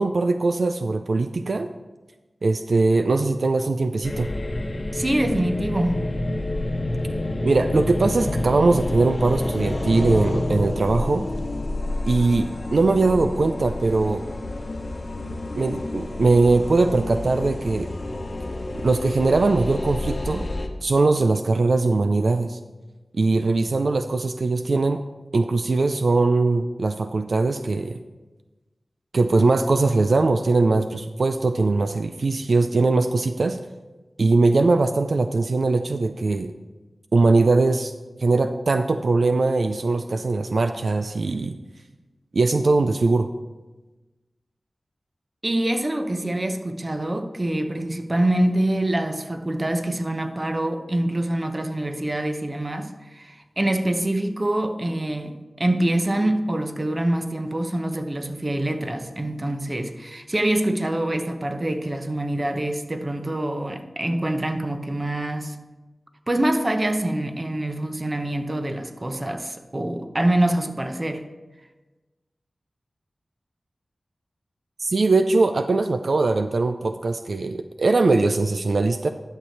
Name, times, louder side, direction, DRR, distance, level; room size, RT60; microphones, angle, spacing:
voice 1, 0.0-1.7 2.4-4.3 7.4-11.3 12.1-14.2 15.6-17.9 18.8-20.5 20.8-22.6 23.1-25.0 25.3-28.0 29.1-33.6 34.2-36.5 37.1-37.9 38.2-41.6 42.3-43.3 74.8-79.1, right 3 dB, 75° right, 0.4 m, -21 dB
sound 1, 4.0-20.7, left 1 dB, 50° left, 1.0 m, -29 dB
voice 2, 4.9-6.0 45.4-65.6 66.3-71.2, right 1 dB, 35° right, 0.9 m, -25 dB
11.0 x 6.7 x 4.4 m
wide cardioid pair, 55°, 0 cm